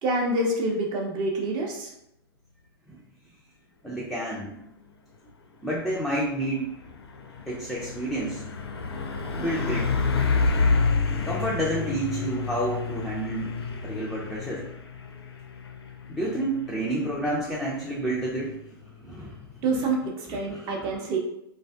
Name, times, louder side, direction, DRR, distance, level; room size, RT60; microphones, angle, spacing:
voice 1, 0.0-1.9 19.6-21.2, right 2 dB, 35° right, 0 dB, 0.7 m, -27 dB
voice 2, 3.8-4.6 5.6-6.7 7.5-8.4 9.3-10.0 11.2-13.5 13.8-14.7 16.1-18.6 19.0-19.4 19.7-19.9 20.3-21.0, right 1 dB, ahead, -6 dB, 0.3 m, -30 dB
Truck, 5.7-20.0, left 4 dB, 80° left, 0.4 m, -30 dB
2.4 x 2.4 x 2.3 m, 0.81 s
figure-of-eight pair, 95°, 13 cm